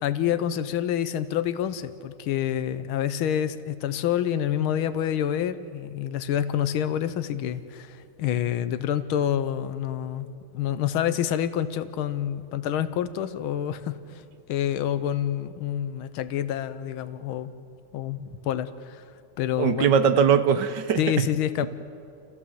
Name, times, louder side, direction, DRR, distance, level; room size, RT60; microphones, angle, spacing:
voice 1, 0.0-14.2 14.5-17.5 17.9-19.0 19.4-19.9 21.0-21.7, left 10 dB, 80° left, 13 dB, 1.7 m, -27 dB
voice 2, 19.6-21.0, right 7 dB, 65° right, 11 dB, 1.3 m, -20 dB
29.0 x 16.0 x 7.6 m, 2.5 s
omnidirectional pair, 2.3 m